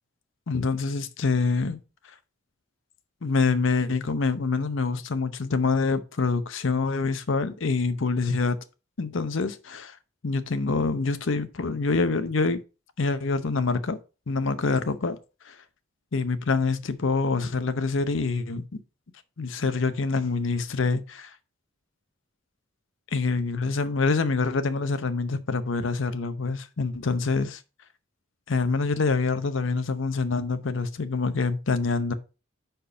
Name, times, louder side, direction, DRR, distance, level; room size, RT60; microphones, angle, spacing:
voice 1, 0.5-1.8 3.2-8.6 9.0-9.9 10.2-12.6 13.0-14.0 14.3-15.2 15.5-15.6 16.1-18.8 19.4-21.3 23.1-27.6 28.5-32.1, left 4 dB, 65° left, 0.7 m, -26 dB
5.0 x 4.5 x 5.6 m
head